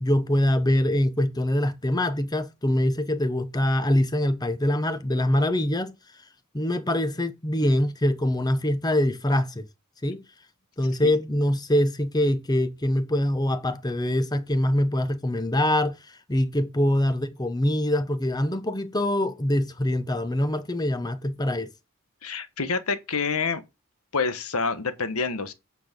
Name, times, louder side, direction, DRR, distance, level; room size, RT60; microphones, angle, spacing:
voice 1, 0.0-5.9 6.5-9.7 10.0-10.2 10.8-21.7, left 1 dB, 15° left, 0.8 m, -24 dB
voice 2, 22.2-23.6 24.1-25.5, left 4 dB, 75° left, 1.2 m, -27 dB
8.5 x 4.8 x 5.2 m
head